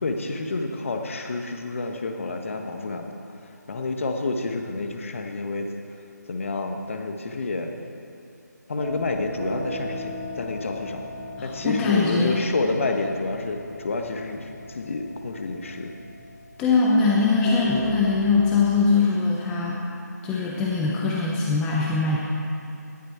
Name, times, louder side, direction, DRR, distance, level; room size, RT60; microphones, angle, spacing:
voice 1, 0.0-3.2 3.7-5.7 6.3-7.7 8.7-11.0 11.4-16.0, left 3 dB, 45° left, 4 dB, 1.3 m, -29 dB
sound 1, 8.8-18.8, left 1 dB, 50° right, 2.6 m, -37 dB
voice 2, 11.4-12.4 16.6-19.8 20.2-22.2, left 4 dB, 10° left, -3 dB, 0.7 m, -22 dB
17.5 x 11.5 x 4.5 m, 2.7 s
figure-of-eight pair, 160°, 10 cm